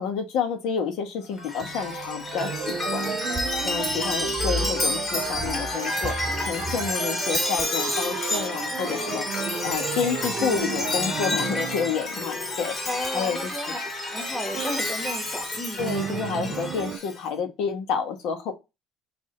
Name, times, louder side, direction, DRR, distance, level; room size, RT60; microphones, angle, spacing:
voice 1, 0.0-13.5 15.8-18.5, left 6 dB, 65° left, 1.3 m, -29 dB
Chime, 1.3-17.2, left 1 dB, 25° left, 2.0 m, -29 dB
sound 1, 2.4-12.1 14.5-14.8 15.8-17.0, right 8 dB, 45° right, 0.4 m, -34 dB
voice 2, 12.9-13.8 14.1-15.8, equal, 5° right, 1.2 m, -33 dB
4.8 x 2.7 x 3.7 m
cardioid pair, 135°, 0 cm